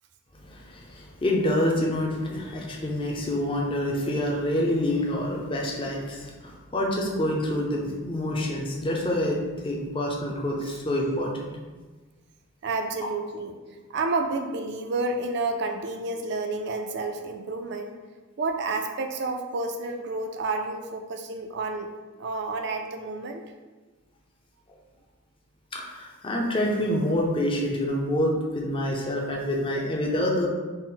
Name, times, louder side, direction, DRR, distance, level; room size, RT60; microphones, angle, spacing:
voice 1, 0.5-11.5 25.7-30.5, left 1 dB, 25° left, -1 dB, 0.5 m, -27 dB
voice 2, 12.6-13.6 13.9-17.9 18.4-21.9 22.2-23.4, right 3 dB, 50° right, 5 dB, 0.4 m, -30 dB
4.1 x 2.1 x 3.8 m, 1.3 s
head